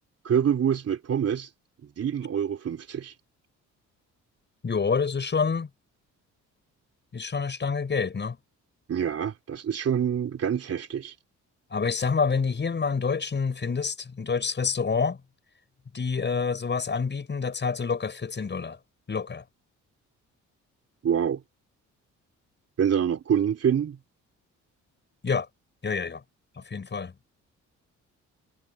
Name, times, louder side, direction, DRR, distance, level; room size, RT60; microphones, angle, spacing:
voice 1, 0.3-1.5 2.0-3.1 8.9-11.1 21.0-21.4 22.8-24.0, right 8 dB, 55° right, 3.4 m, -26 dB
voice 2, 4.6-5.7 7.1-8.4 11.7-15.2 15.9-18.8 19.1-19.4 25.2-25.5 25.8-26.2 26.6-27.1, left 5 dB, 35° left, 6.8 m, -27 dB
cardioid pair, 90°, 30 cm